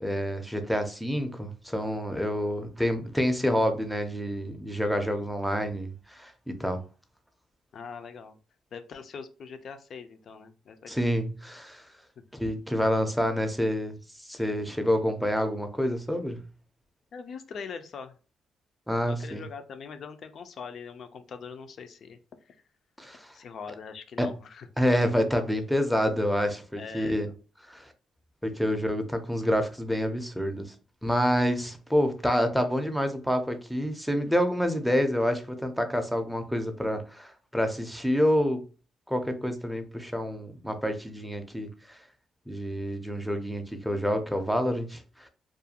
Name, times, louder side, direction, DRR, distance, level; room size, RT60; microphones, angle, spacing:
voice 1, 0.0-6.8 10.9-11.9 12.4-16.4 18.9-19.4 23.0-23.3 24.2-24.3 24.8-27.3 27.7-27.9 28.4-30.7 31.0-38.6 39.1-42.0 42.5-45.3, equal, ahead, 0.5 m, -28 dB
voice 2, 7.7-8.4 8.7-10.9 17.1-18.2 19.0-22.2 22.4-22.6 23.3-24.7 26.8-27.2, left 5 dB, 60° left, 0.4 m, -42 dB
2.4 x 2.2 x 2.7 m
cardioid pair, 90°, 0 cm